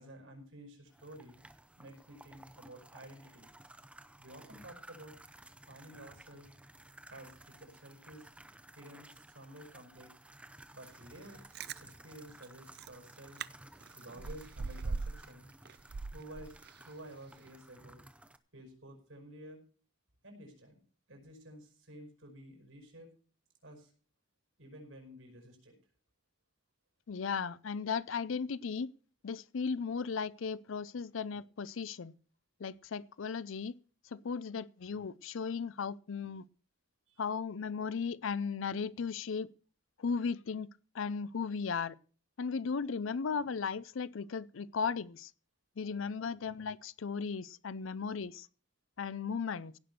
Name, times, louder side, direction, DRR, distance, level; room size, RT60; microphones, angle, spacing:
voice 1, 0.0-1.4 1.8-3.5 4.2-5.2 5.7-6.5 7.1-8.3 8.8-10.1 10.7-11.4 11.8-13.4 14.0-15.5 16.1-16.6 16.8-18.0 18.5-19.6 20.2-20.8 21.1-23.1 23.6-23.9 24.6-25.8 37.1-37.2, right 1 dB, 85° right, 5.2 m, -52 dB
sound 1, 0.9-18.4, right 1 dB, 5° right, 0.7 m, -56 dB
Chewing mastication, 11.3-11.8 12.4-12.5 12.7-13.0 13.4-13.5 13.8-15.3 15.6-16.9 17.3-17.4, right 4 dB, 50° right, 0.5 m, -40 dB
voice 2, 27.1-28.9 29.2-32.1 32.6-33.7 34.0-36.4 37.2-39.5 40.0-40.7 40.9-42.0 42.4-45.3 45.8-48.5 49.0-49.7, left 5 dB, 85° left, 0.5 m, -36 dB
16.5 x 6.0 x 6.7 m
head